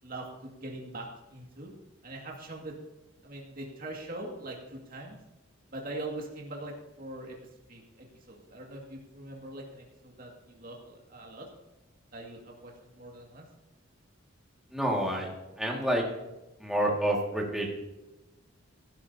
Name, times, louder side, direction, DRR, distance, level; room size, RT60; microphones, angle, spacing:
voice 1, 0.0-1.7 2.0-2.7 3.2-5.2 5.7-7.4 7.7-11.5 12.1-13.5, right 2 dB, 45° right, -1 dB, 2.2 m, -42 dB
voice 2, 14.7-15.3 15.6-16.1 16.6-17.7, right 1 dB, ahead, -2 dB, 2.1 m, -28 dB
17.0 x 11.5 x 2.8 m, 1.0 s
head